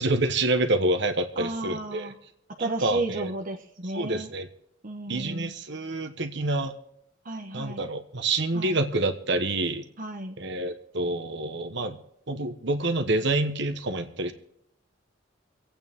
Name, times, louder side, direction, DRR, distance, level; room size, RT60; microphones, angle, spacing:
voice 1, 0.0-2.1 2.6-3.3 3.9-4.5 5.1-6.7 7.5-9.8 10.4-12.0 12.3-14.3, right 2 dB, 60° right, 7 dB, 1.3 m, -27 dB
voice 2, 1.4-2.1 2.6-4.3 4.8-5.5 7.2-7.9 8.5-8.8 10.0-10.4, right 2 dB, 45° right, 3 dB, 1.1 m, -33 dB
26.0 x 8.9 x 3.7 m, 0.76 s
head